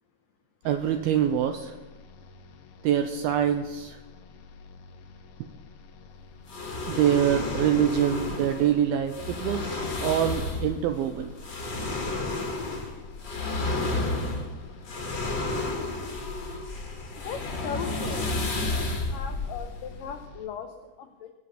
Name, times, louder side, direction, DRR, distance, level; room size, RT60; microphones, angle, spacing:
sound 1, 0.6-20.5, left 4 dB, 65° left, 2.9 m, -50 dB
voice 1, 0.7-1.8 2.8-4.0 6.9-11.3, right 9 dB, 85° right, 7 dB, 2.2 m, -25 dB
sound 2, 6.5-20.4, left 2 dB, 35° left, 2.0 m, -32 dB
voice 2, 17.2-18.3 18.7-21.3, left 7 dB, 85° left, 6 dB, 1.9 m, -38 dB
21.5 x 7.9 x 7.1 m, 1.1 s
omnidirectional pair, 5.1 m